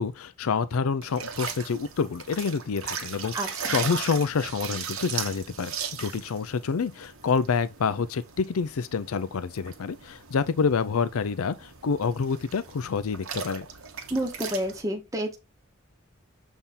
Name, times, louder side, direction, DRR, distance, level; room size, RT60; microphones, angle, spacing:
voice 1, 0.0-5.7 6.0-13.7, left 5 dB, 90° left, 0.5 m, -27 dB
sound 1, 1.0-14.8, right 7 dB, 85° right, 1.2 m, -38 dB
voice 2, 3.3-3.8 14.1-15.4, right 1 dB, 15° right, 0.9 m, -30 dB
7.2 x 3.5 x 4.1 m
head